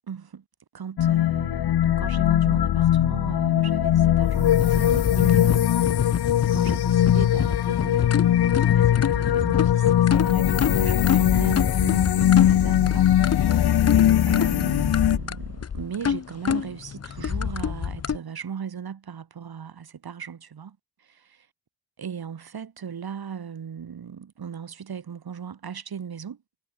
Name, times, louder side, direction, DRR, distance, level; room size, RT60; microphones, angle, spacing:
voice 1, 0.1-0.4 0.7-13.0 13.4-13.7 14.2-21.5 22.0-26.4, right 7 dB, 70° right, 2.8 m, -38 dB
sound 1, 1.0-15.2, left 11 dB, 85° left, 0.7 m, -20 dB
sound 2, 4.5-18.2, left 7 dB, 40° left, 0.7 m, -28 dB
wide cardioid pair, 170°, 38 cm